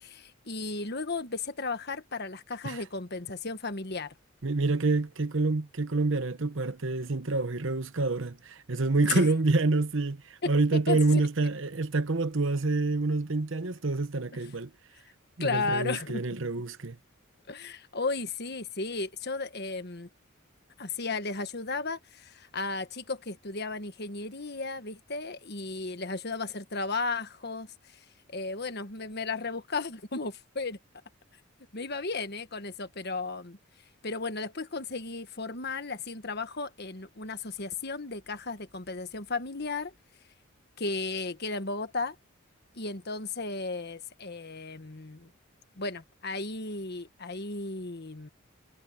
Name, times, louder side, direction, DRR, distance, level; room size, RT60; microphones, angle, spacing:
voice 1, 0.0-4.1 9.1-9.3 10.4-11.2 15.4-16.2 17.5-20.1 20.8-27.7 28.3-30.8 31.7-33.6 34.0-39.9 40.8-42.1 42.7-45.3 45.8-48.3, left 3 dB, 50° left, 1.5 m, -34 dB
voice 2, 4.4-14.7 15.4-17.0, right 3 dB, 60° right, 1.0 m, -27 dB
head